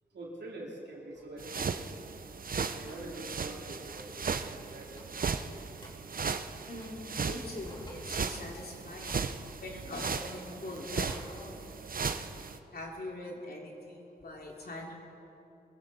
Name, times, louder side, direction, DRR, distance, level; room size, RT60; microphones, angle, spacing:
voice 1, 0.1-1.8 2.7-5.2, right 1 dB, 85° right, -3 dB, 3.1 m, -45 dB
sound 1, 1.1-1.3 2.9-3.1 3.8-4.1 4.9-5.3 5.8-5.9 6.8-7.2 7.6-8.1 8.8-9.3 9.9-10.4 11.0-11.2, equal, 25° left, 3.3 m, -50 dB
sound 2, 1.4-12.6, right 5 dB, 55° right, 0.7 m, -37 dB
voice 2, 6.7-11.7 12.7-15.0, left 1 dB, 65° left, -1 dB, 2.9 m, -43 dB
22.0 x 15.0 x 4.2 m, 2.9 s
cardioid pair, 40°, 17 cm